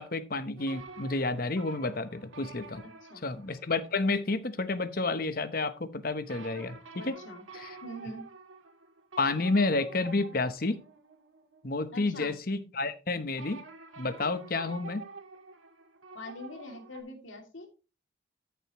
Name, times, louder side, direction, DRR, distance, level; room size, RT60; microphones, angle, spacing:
voice 1, 0.0-2.8 3.2-7.2 7.5-7.8 9.2-10.8 11.6-13.6 14.0-15.0, left 3 dB, 45° left, 11 dB, 0.9 m, -30 dB
sound 1, 0.6-4.0 6.3-12.0 13.4-17.0, right 3 dB, 85° right, 1.9 m, -49 dB
voice 2, 2.8-3.2 7.0-7.4 7.8-8.3 11.9-12.4 16.1-17.7, left 1 dB, 75° left, 3 dB, 2.7 m, -44 dB
13.5 x 6.9 x 3.0 m, 0.31 s
head